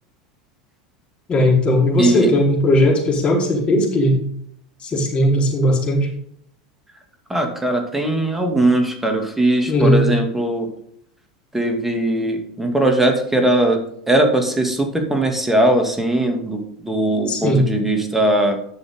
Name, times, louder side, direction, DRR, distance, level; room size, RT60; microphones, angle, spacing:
voice 1, 1.3-4.2 4.8-6.1 9.7-10.0 17.3-17.7, left 1 dB, 30° left, -2 dB, 4.4 m, -17 dB
voice 2, 2.0-2.3 7.3-10.7 11.5-13.8 14.1-18.6, right 1 dB, 5° right, 3 dB, 2.6 m, -19 dB
11.0 x 6.9 x 3.8 m, 0.67 s
hypercardioid pair, 95°, 4 cm